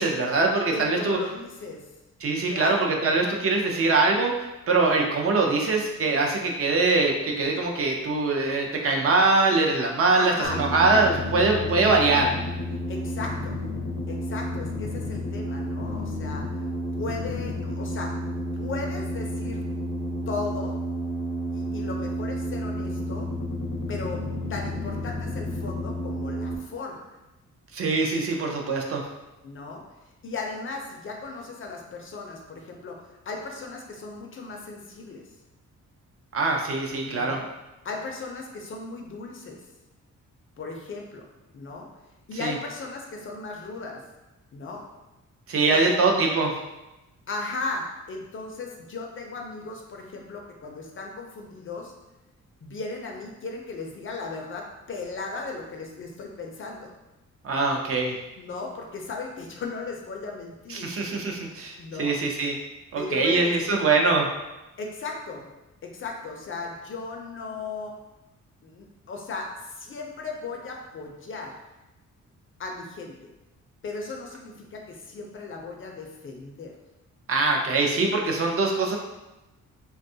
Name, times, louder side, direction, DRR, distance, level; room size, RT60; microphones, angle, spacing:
voice 1, 0.0-1.2 2.2-12.3 27.7-29.0 36.3-37.4 42.4-42.5 45.5-46.5 57.4-58.2 60.7-62.5 62.9-64.3 77.3-79.0, right 3 dB, 45° right, 1 dB, 0.4 m, -23 dB
voice 2, 0.7-1.8 2.5-2.9 10.2-10.6 12.9-13.6 14.1-16.5 16.9-18.2 18.5-19.6 20.3-20.8 21.5-23.3 23.9-24.2 24.5-27.1 29.4-29.8 30.2-35.2 37.0-37.4 37.8-39.6 40.6-41.3 41.5-41.9 42.3-44.0 44.5-44.8 45.7-46.1 47.3-51.9 52.6-56.9 58.4-60.9 61.8-62.2 63.0-63.8 64.8-65.4 65.8-68.0 68.6-71.5 72.6-73.1 73.8-76.7, left 3 dB, 40° left, 1 dB, 0.4 m, -36 dB
sound 1, 10.4-26.6, equal, 85° left, 0.6 m, -31 dB
3.3 x 2.2 x 2.6 m, 1.0 s
wide cardioid pair, 160°, 31 cm